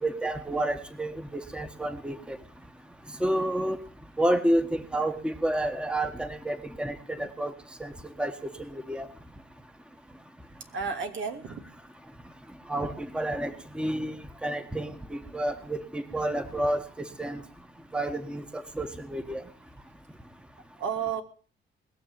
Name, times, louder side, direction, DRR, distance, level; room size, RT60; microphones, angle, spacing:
voice 1, 0.0-2.4 3.2-3.8 4.2-7.5 7.8-7.9 8.2-8.3 8.9-9.1 12.7-14.1 14.4-16.8 17.2-17.4 17.9-19.4, right 1 dB, 5° right, 9 dB, 1.4 m, -29 dB
voice 2, 10.7-11.6 20.8-21.2, right 6 dB, 75° right, 6 dB, 2.8 m, -32 dB
20.5 x 7.0 x 8.8 m, 0.42 s
cardioid pair, 90°, 20 cm